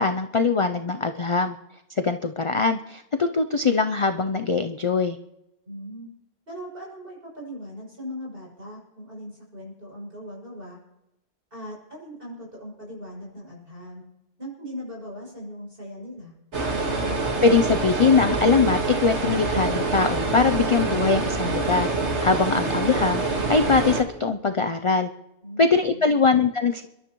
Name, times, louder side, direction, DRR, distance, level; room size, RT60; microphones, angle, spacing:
voice 1, 0.0-1.6 1.9-5.2 17.4-21.9 22.2-23.2 23.5-25.1 25.6-26.8, left 4 dB, 45° left, 7 dB, 0.4 m, -22 dB
voice 2, 5.7-6.1 6.5-10.8 11.5-14.0 14.4-16.4 25.4-26.2, equal, 50° right, -3 dB, 6.9 m, -39 dB
sound 1, 16.5-24.0, right 3 dB, 80° right, 2.0 m, -26 dB
29.0 x 12.0 x 3.1 m, 0.94 s
omnidirectional pair, 1.2 m